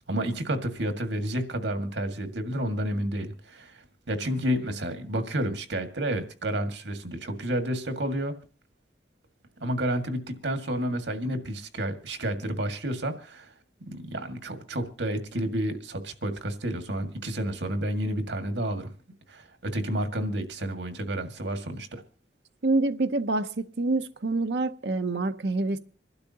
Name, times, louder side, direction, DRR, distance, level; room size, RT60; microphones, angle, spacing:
voice 1, 0.1-3.8 4.1-8.3 9.6-13.5 13.9-18.9 19.3-22.0, right 1 dB, 85° right, 1.9 m, -30 dB
voice 2, 22.6-25.8, right 2 dB, 70° right, 0.7 m, -26 dB
27.0 x 12.0 x 2.8 m
head